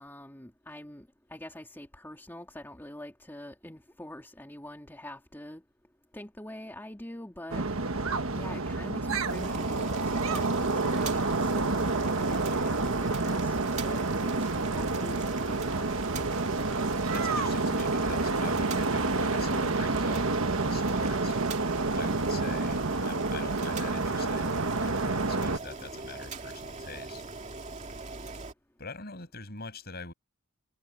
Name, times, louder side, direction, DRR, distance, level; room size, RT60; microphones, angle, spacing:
voice 1, 0.0-5.6 6.1-8.1 8.3-15.8, left 1 dB, 10° left, 2.8 m, -45 dB
sound 1, 7.5-25.6, right 3 dB, 65° right, 1.5 m, -29 dB
Boiling, 9.3-28.5, right 3 dB, 35° right, 2.5 m, -41 dB
voice 2, 17.1-20.2 20.7-21.4 21.9-27.2 28.8-30.1, left 3 dB, 45° left, 7.5 m, -43 dB
head